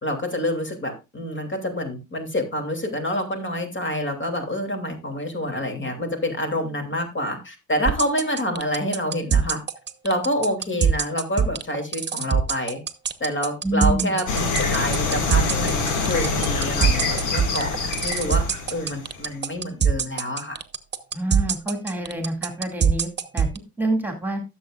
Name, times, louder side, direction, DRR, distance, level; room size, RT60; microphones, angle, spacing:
voice 1, 0.0-9.6 10.0-12.8 13.2-14.2 14.6-18.4 18.7-20.6, left 1 dB, 40° left, 4 dB, 2.8 m, -27 dB
sound 1, 7.9-23.6, right 7 dB, 35° right, 1.0 m, -22 dB
voice 2, 13.6-14.1 21.1-24.4, right 1 dB, 5° right, 3 dB, 2.2 m, -27 dB
sound 2, 14.3-19.4, left 4 dB, 80° left, 2.0 m, -25 dB
15.5 x 7.1 x 2.4 m, 0.26 s
cardioid pair, 90°, 30 cm